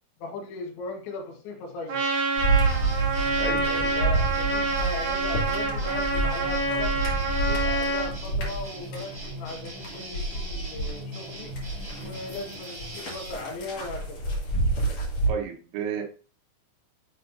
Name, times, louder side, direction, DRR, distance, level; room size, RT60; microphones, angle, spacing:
voice 1, 0.2-2.0 4.0-7.0 7.4-11.5 12.0-14.2 16.0-16.1, left 2 dB, 70° left, 1 dB, 3.6 m, -38 dB
Trumpet, 1.9-8.1, right 3 dB, 45° right, 4.6 m, -27 dB
sound 1, 2.4-11.0 11.3-15.3, right 2 dB, 40° left, 3.1 m, -28 dB
sound 2, 2.6-13.3, right 1 dB, 15° right, 3.5 m, -40 dB
voice 2, 3.4-4.0 11.9-12.2 14.8-14.9 15.3-16.0, right 6 dB, 80° right, 2 dB, 4.1 m, -33 dB
11.0 x 6.3 x 2.7 m, 0.38 s
omnidirectional pair, 5.7 m